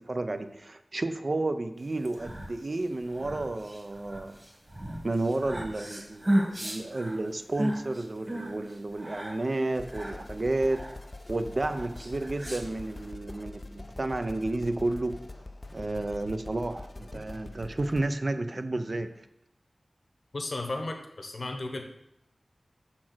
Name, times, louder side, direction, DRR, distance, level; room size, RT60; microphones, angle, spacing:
voice 1, 0.0-4.4 5.0-10.9 11.3-15.2 15.7-19.1, right 2 dB, 50° right, 9 dB, 0.6 m, -31 dB
sound 1, 1.9-13.1, right 1 dB, 30° right, 1.6 m, -35 dB
sound 2, 9.7-18.1, left 2 dB, 45° left, 0.4 m, -44 dB
voice 2, 20.3-21.8, left 2 dB, 65° left, 3 dB, 1.0 m, -34 dB
5.9 x 4.4 x 6.0 m, 0.81 s
wide cardioid pair, 60°, 0 cm